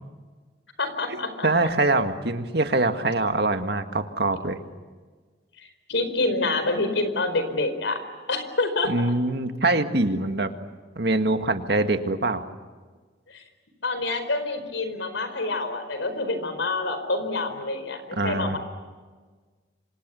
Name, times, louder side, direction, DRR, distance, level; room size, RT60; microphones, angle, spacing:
voice 1, 0.8-1.5 5.9-8.0 8.3-8.9 13.3-13.4 13.8-18.6, left 2 dB, 85° left, 9 dB, 4.7 m, -27 dB
voice 2, 1.4-4.6 8.9-10.5 11.0-12.4 18.2-18.6, right 2 dB, 60° right, 7 dB, 1.9 m, -24 dB
29.0 x 26.0 x 7.0 m, 1.4 s
head